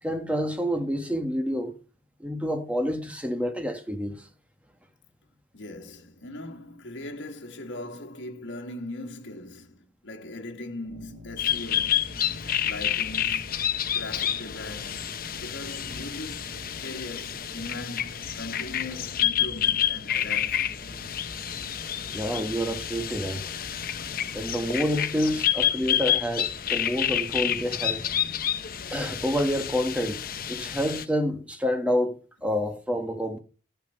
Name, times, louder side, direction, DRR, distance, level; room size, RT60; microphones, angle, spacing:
voice 1, 0.0-1.8 2.2-4.3 22.1-23.5 24.3-28.0 28.9-30.2 30.5-33.4, equal, 5° right, 1.5 m, -28 dB
voice 2, 5.5-12.1 12.6-16.4 16.8-20.8 28.1-28.7, left 2 dB, 80° left, 1.6 m, -40 dB
sound 1, 10.8-24.4, left 1 dB, 80° right, 2.4 m, -48 dB
sound 2, 11.4-31.0, left 10 dB, 50° left, 0.8 m, -29 dB
14.5 x 7.4 x 5.6 m
head